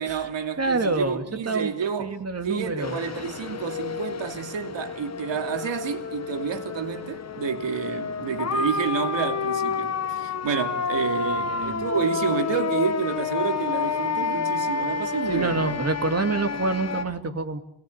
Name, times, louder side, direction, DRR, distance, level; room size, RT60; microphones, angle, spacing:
voice 1, 0.0-2.1 2.4-15.8, right 7 dB, 80° right, 2.8 m, -29 dB
voice 2, 0.6-1.7 2.0-3.0 11.2-11.9 15.3-17.6, right 3 dB, 35° right, 2.5 m, -27 dB
sound 1, 2.8-17.0, left 5 dB, 35° left, 1.2 m, -29 dB
30.0 x 21.5 x 8.1 m
wide cardioid pair, 170°, 44 cm